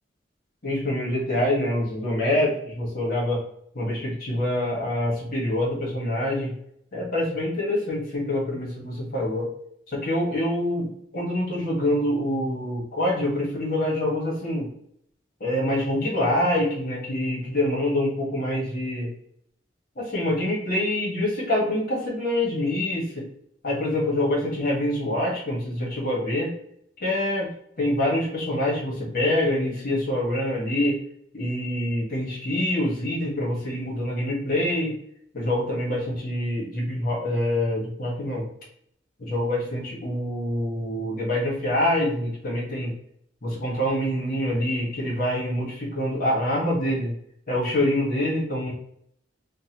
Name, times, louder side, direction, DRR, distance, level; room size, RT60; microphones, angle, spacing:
voice 1, 0.6-3.4 3.7-6.5 6.9-9.5 9.9-10.9 11.1-14.7 15.4-19.1 20.0-23.2 23.6-26.5 27.0-27.5 27.8-31.0 31.3-34.9 35.3-38.5 39.2-42.9 43.4-47.1 47.5-48.7, left 1 dB, 55° left, -4 dB, 1.5 m, -25 dB
5.3 x 2.3 x 2.9 m, 0.71 s
head